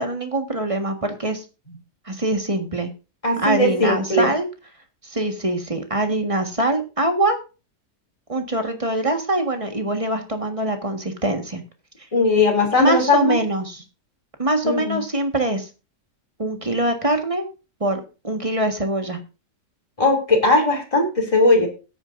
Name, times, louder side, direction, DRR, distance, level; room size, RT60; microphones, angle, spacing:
voice 1, 0.0-1.4 2.0-2.9 3.4-4.5 5.0-7.4 8.3-11.6 12.8-13.8 14.4-15.7 16.4-17.4 17.8-19.2, right 1 dB, 20° right, 6 dB, 1.5 m, -23 dB
voice 2, 3.2-4.3 12.1-13.4 14.6-15.0 20.0-21.7, left 2 dB, 20° left, 1 dB, 2.8 m, -18 dB
17.0 x 9.1 x 2.6 m, 0.31 s
omnidirectional pair, 1.8 m